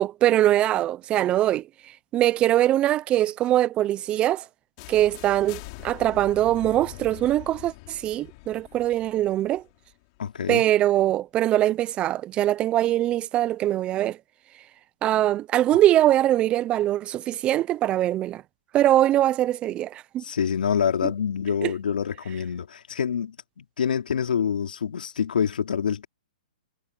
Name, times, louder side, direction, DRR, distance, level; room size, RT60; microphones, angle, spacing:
voice 1, 0.0-1.6 2.1-4.4 4.9-9.6 10.5-14.2 15.0-18.4 18.7-20.2 21.0-21.1 21.6-21.7, right 13 dB, 20° right, 0.5 m, -22 dB
sound 1, 4.8-10.6, left 26 dB, 40° left, 4.8 m, -44 dB
voice 2, 10.2-10.6 20.2-26.1, left 7 dB, 75° left, 3.4 m, -26 dB
hypercardioid pair, 140°, 5 cm